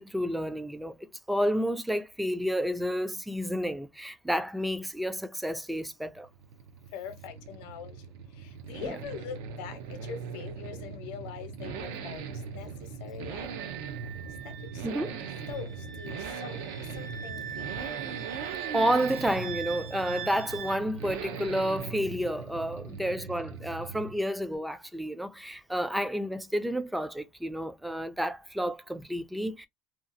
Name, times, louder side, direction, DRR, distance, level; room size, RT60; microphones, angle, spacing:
voice 1, 0.0-6.3 8.8-9.0 14.8-15.2 18.7-29.7, equal, 5° right, 0.3 m, -30 dB
Accelerating revving vroom, 6.1-24.3 24.5-24.6, right 6 dB, 85° right, 0.6 m, -40 dB
voice 2, 6.9-8.0 8.4-12.7 13.0-13.5 14.4-15.1 15.5-16.6 17.0-17.5 17.8-18.0 22.9-23.2, left 7 dB, 70° left, 0.7 m, -43 dB
Wind instrument woodwind instrument, 13.5-20.8, right 8 dB, 50° right, 1.0 m, -42 dB
2.8 x 2.4 x 2.5 m
cardioid pair, 155°, 0 cm